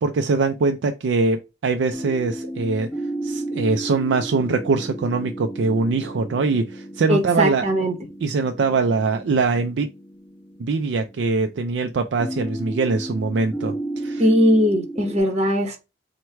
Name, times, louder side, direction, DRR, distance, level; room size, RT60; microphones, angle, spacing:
voice 1, 0.0-2.9 3.2-7.7 8.2-9.9 10.6-14.3, right 4 dB, 70° right, 0.4 m, -22 dB
sound 1, 1.9-15.2, right 1 dB, 5° left, 0.8 m, -34 dB
voice 2, 7.1-7.9 14.2-15.8, equal, 35° right, 0.9 m, -19 dB
4.5 x 2.2 x 4.4 m
head